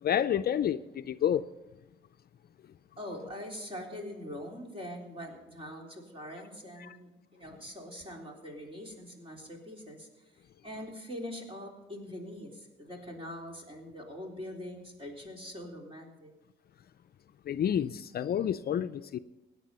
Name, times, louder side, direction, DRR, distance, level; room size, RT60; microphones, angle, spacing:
voice 1, 0.0-1.4 6.8-7.0 17.5-19.2, left 9 dB, 50° left, 0.5 m, -29 dB
voice 2, 3.0-16.3, left 1 dB, 30° right, 3.6 m, -43 dB
17.0 x 9.6 x 5.5 m
cardioid pair, 90°, 20 cm